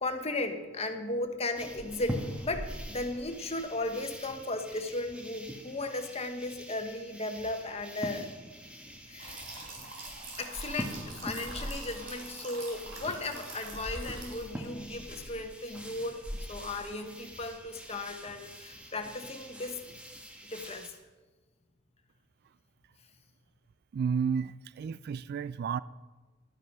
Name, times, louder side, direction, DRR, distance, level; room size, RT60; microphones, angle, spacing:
voice 1, 0.0-8.3 9.1-9.4 10.4-20.1 20.4-21.0, left 2 dB, 30° left, 1.1 m, -36 dB
sound 1, 1.6-20.9, equal, 5° right, 1.3 m, -43 dB
sound 2, 9.2-14.7, right 3 dB, 80° right, 4.2 m, -45 dB
voice 2, 23.9-25.8, right 6 dB, 50° right, 0.3 m, -31 dB
12.0 x 9.2 x 5.5 m
head